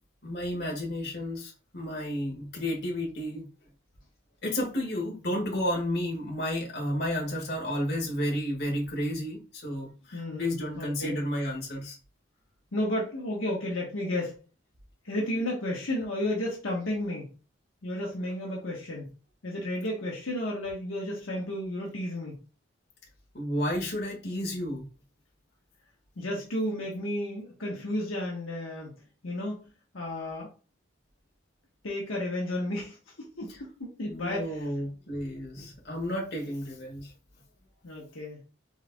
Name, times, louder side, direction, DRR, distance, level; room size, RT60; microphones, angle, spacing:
voice 1, 0.2-3.5 4.4-12.0 23.3-24.8 33.5-33.6 34.0-37.1, left 1 dB, 50° left, -1 dB, 1.7 m, -32 dB
voice 2, 10.1-11.2 12.7-14.4 15.0-17.3 17.8-19.1 19.4-22.4 26.2-29.0 29.2-29.7 29.9-30.5 31.8-34.7 37.8-38.4, left 1 dB, 75° left, -2 dB, 1.3 m, -32 dB
4.8 x 4.1 x 2.3 m, 0.35 s
head